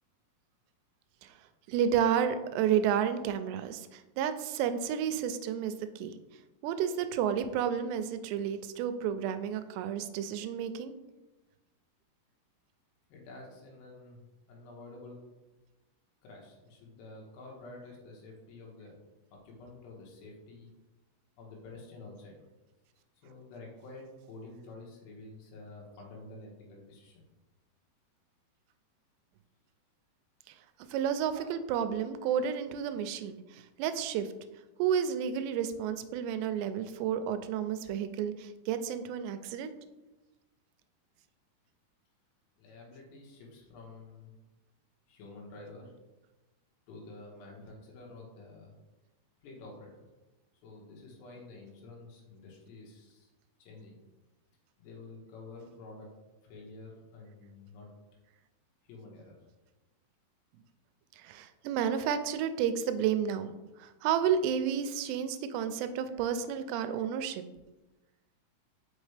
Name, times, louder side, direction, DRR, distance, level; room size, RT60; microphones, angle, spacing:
voice 1, 1.7-6.1 6.6-10.9 30.9-34.3 34.8-39.7 61.2-63.5 63.8-67.4, right 8 dB, 90° right, 10 dB, 2.7 m, -31 dB
voice 2, 13.1-15.2 16.2-19.0 19.3-20.7 21.4-22.4 23.2-27.2 42.6-44.3 45.1-45.9 46.9-48.8 49.4-50.1 50.6-53.3 53.6-54.0 54.8-56.1 56.4-57.9 58.8-59.4, left 2 dB, 80° left, -1 dB, 3.5 m, -49 dB
6.3 x 5.4 x 3.3 m, 1.1 s
omnidirectional pair, 4.9 m